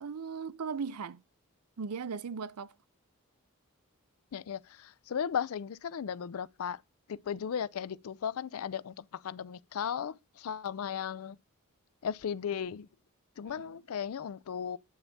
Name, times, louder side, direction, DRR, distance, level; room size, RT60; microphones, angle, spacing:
voice 1, 0.0-1.2 1.8-2.7 13.4-13.5, right 5 dB, 85° right, 0.5 m, -37 dB
voice 2, 4.3-6.8 7.1-11.4 12.0-12.9 13.4-14.8, left 8 dB, 65° left, 0.4 m, -36 dB
9.4 x 3.5 x 7.0 m
head